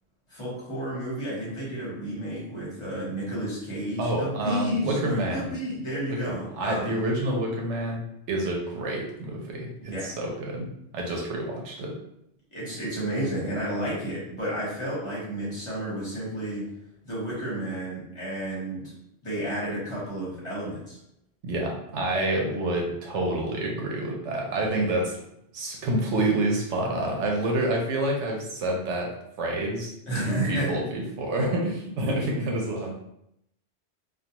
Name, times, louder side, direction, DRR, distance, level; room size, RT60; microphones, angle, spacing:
voice 1, 0.3-6.9 9.8-10.1 12.5-16.7 17.0-18.9 19.2-21.0 30.1-30.7, right 1 dB, 30° left, -7 dB, 1.0 m, -31 dB
voice 2, 4.0-5.5 6.1-10.7 10.9-12.0 21.4-25.2 25.5-29.9 30.2-32.9, right 1 dB, 85° right, 0 dB, 0.9 m, -28 dB
2.3 x 2.2 x 2.8 m, 0.76 s
omnidirectional pair, 1.2 m